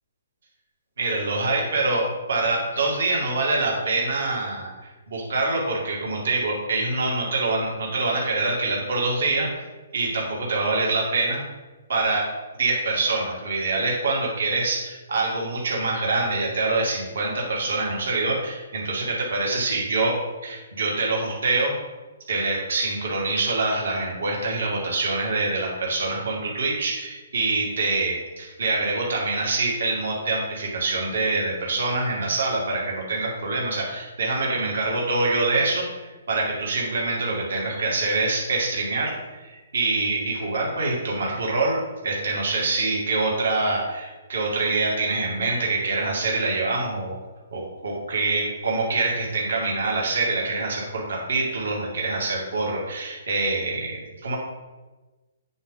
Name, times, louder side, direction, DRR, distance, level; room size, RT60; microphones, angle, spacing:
voice 1, 1.0-9.7 9.9-11.4 11.9-12.3 12.6-20.2 20.4-21.7 22.3-41.8 42.0-47.2 47.5-54.4, right 3 dB, 75° right, -3 dB, 2.3 m, -25 dB
8.7 x 4.3 x 3.8 m, 1.2 s
hypercardioid pair, 160°, 0 cm